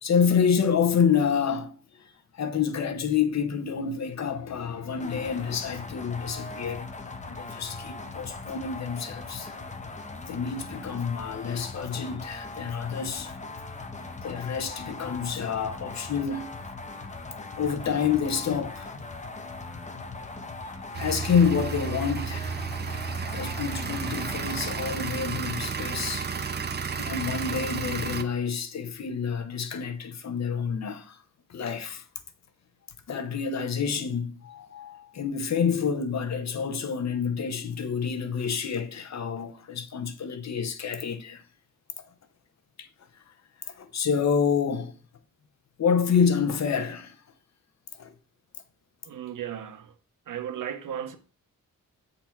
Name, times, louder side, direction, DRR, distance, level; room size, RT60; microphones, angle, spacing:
voice 1, 0.0-6.9 7.2-9.5 10.3-13.3 14.2-16.5 17.6-19.0 20.2-20.3 21.0-22.5 23.3-26.3 27.0-31.2 31.5-32.1 33.1-41.4 42.0-42.1 42.8-42.9 43.6-44.9 45.8-47.2 47.9-48.1, left 6 dB, 55° left, 0.8 m, -28 dB
sound 1, 5.0-24.8, left 3 dB, 20° left, 0.6 m, -40 dB
sound 2, 20.9-28.2, right 6 dB, 30° right, 0.5 m, -32 dB
voice 2, 49.0-49.9 50.3-51.2, right 9 dB, 70° right, 0.9 m, -35 dB
8.1 x 4.0 x 4.4 m
wide cardioid pair, 175°, 33 cm